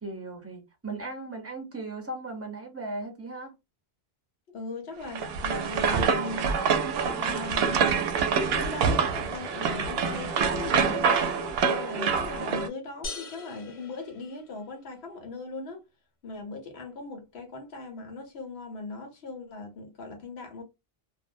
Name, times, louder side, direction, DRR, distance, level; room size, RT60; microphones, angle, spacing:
voice 1, 0.0-3.5, right 2 dB, 15° right, 0.7 m, -37 dB
voice 2, 4.5-6.5 7.0-8.1 8.5-11.1 11.6-15.8 16.2-20.6, left 3 dB, 80° left, 1.2 m, -39 dB
sound 1, 5.1-12.7, right 6 dB, 75° right, 0.8 m, -26 dB
sound 2, 13.0-14.9, left 3 dB, 45° left, 0.4 m, -41 dB
2.6 x 2.0 x 2.5 m
omnidirectional pair, 1.1 m